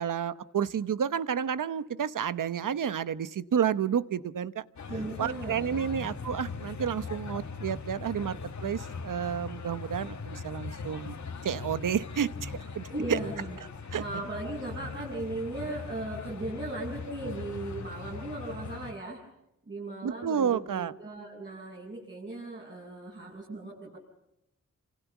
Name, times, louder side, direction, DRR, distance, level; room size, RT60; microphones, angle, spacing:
voice 1, 0.0-4.6 5.2-11.2 11.4-13.2 13.9-14.0 20.0-20.9, right 8 dB, 85° right, 14 dB, 1.0 m, -30 dB
sound 1, 4.8-18.9, left 4 dB, 65° left, 2.1 m, -40 dB
voice 2, 4.9-6.1 12.9-13.6 13.9-19.2 19.7-24.0, right 2 dB, 35° right, -4 dB, 8.0 m, -37 dB
29.0 x 27.5 x 7.2 m, 0.85 s
wide cardioid pair, 115°, 31 cm